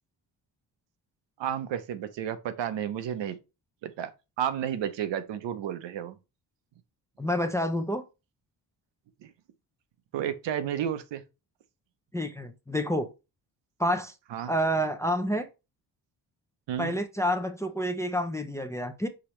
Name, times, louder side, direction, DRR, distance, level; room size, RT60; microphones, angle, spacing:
voice 1, 1.4-3.4 3.8-4.1 4.4-6.2 9.2-9.3 10.1-11.2 14.3-14.5 16.7-16.9, right 9 dB, 80° right, 0.7 m, -32 dB
voice 2, 7.2-8.0 12.1-13.1 13.8-14.1 14.5-15.5 16.8-19.1, equal, 5° left, 0.4 m, -28 dB
4.9 x 2.9 x 3.0 m
cardioid pair, 95°, 43 cm